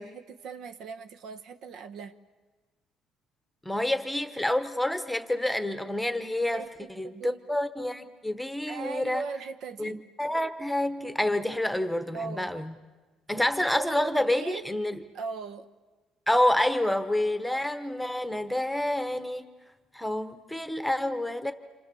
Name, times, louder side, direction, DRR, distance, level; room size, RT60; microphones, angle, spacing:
voice 1, 0.0-2.2 6.5-7.4 8.7-10.0 12.1-12.6 13.4-13.5 13.7-14.7 15.1-15.7 17.5-17.6, right 5 dB, 65° right, 8 dB, 1.1 m, -39 dB
voice 2, 3.6-6.6 7.0-9.2 9.8-12.7 13.3-15.0 16.3-19.4 19.9-21.5, left 1 dB, ahead, 9 dB, 1.1 m, -28 dB
28.0 x 27.0 x 7.0 m, 1.3 s
cardioid pair, 140°, 0 cm